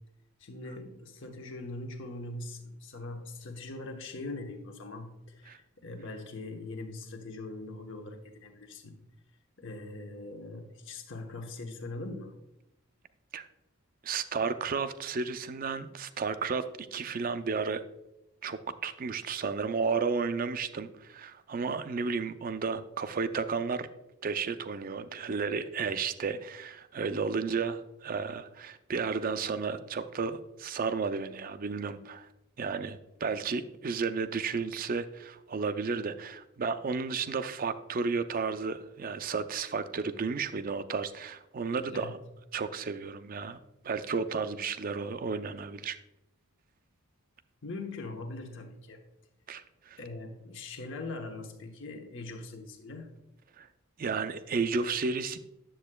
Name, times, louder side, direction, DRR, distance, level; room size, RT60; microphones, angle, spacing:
voice 1, 0.4-8.9 9.6-12.3 41.9-42.2 47.6-49.0 50.0-53.1, left 2 dB, 55° left, 4 dB, 1.0 m, -41 dB
voice 2, 14.0-17.8 18.4-23.9 24.2-32.3 32.6-42.2 42.5-43.6 43.8-46.0 49.5-50.0 53.6-53.7 54.0-55.4, right 5 dB, 40° right, 10 dB, 0.4 m, -33 dB
10.0 x 7.5 x 2.2 m, 0.90 s
head